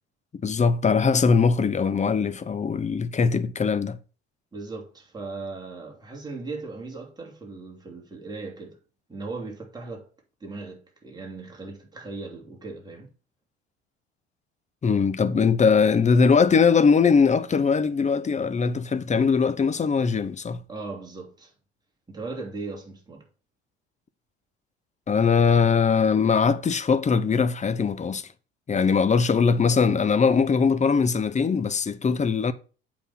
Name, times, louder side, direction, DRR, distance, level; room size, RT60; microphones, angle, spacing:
voice 1, 0.4-4.0 14.8-20.6 25.1-28.3 28.7-32.5, left 5 dB, 20° left, 0.8 m, -21 dB
voice 2, 4.5-8.8 9.1-10.1 10.4-13.1 20.7-21.5 22.1-23.2, right 3 dB, 10° right, 3.0 m, -38 dB
8.3 x 4.2 x 5.7 m
figure-of-eight pair, 65°, 34 cm